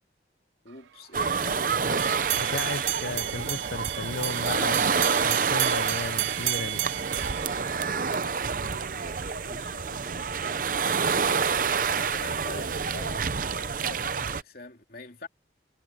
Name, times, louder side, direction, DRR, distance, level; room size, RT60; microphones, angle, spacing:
voice 1, 0.6-2.1 7.8-10.8 11.6-15.3, left 2 dB, 50° left, 3.1 m, -45 dB
sound 1, 1.1-14.4, right 5 dB, 45° right, 0.7 m, -28 dB
sound 2, 2.0-8.2, right 17 dB, 75° right, 0.3 m, -32 dB
voice 2, 2.4-6.8, left 4 dB, 65° left, 0.7 m, -35 dB
head